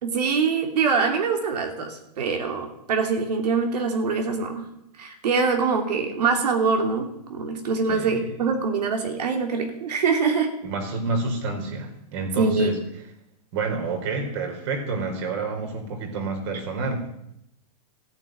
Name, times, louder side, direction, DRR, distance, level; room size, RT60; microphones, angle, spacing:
voice 1, 0.0-4.6 5.0-10.5 12.4-12.7, right 4 dB, 75° right, 4 dB, 2.9 m, -24 dB
voice 2, 7.9-8.3 10.6-12.8 13.5-17.0, right 3 dB, 45° right, 3 dB, 4.2 m, -28 dB
15.0 x 8.9 x 9.3 m, 0.80 s
hypercardioid pair, 160°, 21 cm